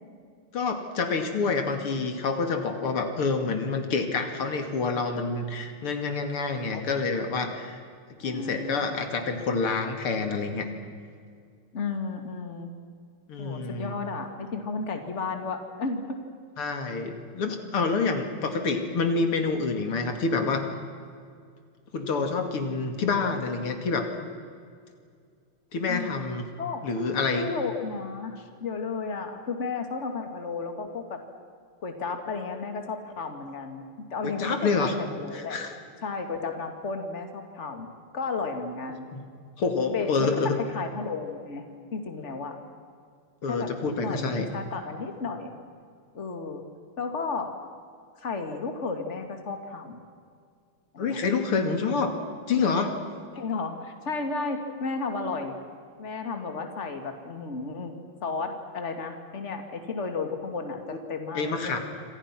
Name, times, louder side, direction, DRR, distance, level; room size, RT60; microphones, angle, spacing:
voice 1, 0.5-7.8 8.2-10.7 13.3-13.9 16.6-20.7 21.9-24.1 25.7-26.5 26.8-27.5 34.2-35.0 35.3-35.7 39.1-39.2 39.6-40.5 43.4-44.5 51.0-52.1 52.5-52.9 61.4-61.8, left 4 dB, 85° left, 5 dB, 3.3 m, -27 dB
voice 2, 8.2-8.9 11.7-12.7 13.4-16.2 17.6-18.0 25.9-26.2 26.6-26.8 27.3-31.2 31.8-35.6 36.0-37.9 38.1-39.1 39.9-41.6 41.9-42.6 43.5-45.5 46.1-46.6 47.0-47.5 48.2-50.0 50.9-51.2 53.3-55.6 56.0-57.9 58.2-61.8, left 4 dB, 35° left, 5 dB, 2.5 m, -33 dB
28.0 x 26.0 x 6.1 m, 2.2 s
omnidirectional pair, 2.4 m